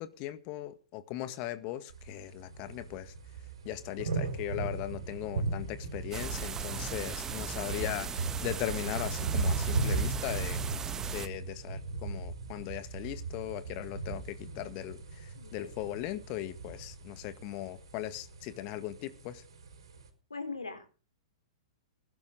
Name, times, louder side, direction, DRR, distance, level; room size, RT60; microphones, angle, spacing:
voice 1, 0.0-3.1 3.6-10.6 11.1-19.4, left 14 dB, 40° left, 1.8 m, -39 dB
sound 1, 1.9-20.1, right 3 dB, 65° right, 4.6 m, -37 dB
sound 2, 6.1-11.3, right 6 dB, 15° right, 1.4 m, -38 dB
voice 2, 9.7-10.1 15.3-15.5 20.3-20.9, left 3 dB, 80° left, 3.8 m, -40 dB
21.0 x 12.0 x 3.9 m
figure-of-eight pair, 105°, 3 cm